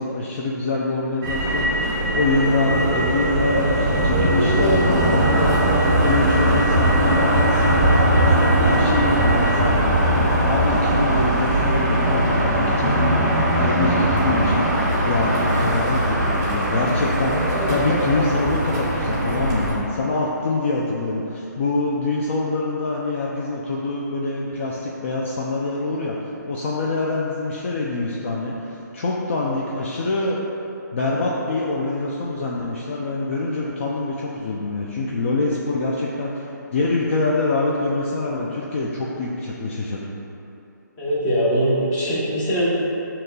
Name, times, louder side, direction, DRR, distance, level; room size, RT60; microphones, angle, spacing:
voice 1, 0.0-30.4 30.9-40.1, left 2 dB, 40° left, -4 dB, 0.4 m, -25 dB
Motor vehicle (road), 1.2-19.7, right 1 dB, 20° right, 1.0 m, -20 dB
voice 2, 41.0-42.7, equal, 15° left, -9 dB, 0.9 m, -21 dB
6.2 x 2.8 x 2.2 m, 2.9 s
hypercardioid pair, 160°, 10 cm